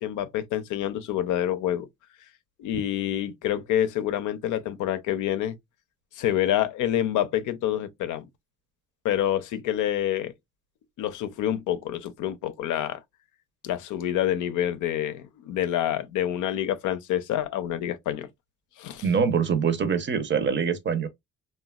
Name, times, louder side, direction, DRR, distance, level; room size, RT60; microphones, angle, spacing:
voice 1, 0.0-1.9 2.6-5.6 6.1-8.3 9.0-10.3 11.0-13.0 13.6-18.3 18.8-19.0, left 11 dB, 80° left, 0.5 m, -27 dB
voice 2, 19.0-21.1, right 6 dB, 40° right, 0.6 m, -24 dB
2.9 x 2.2 x 2.2 m
cardioid pair, 90°, 30 cm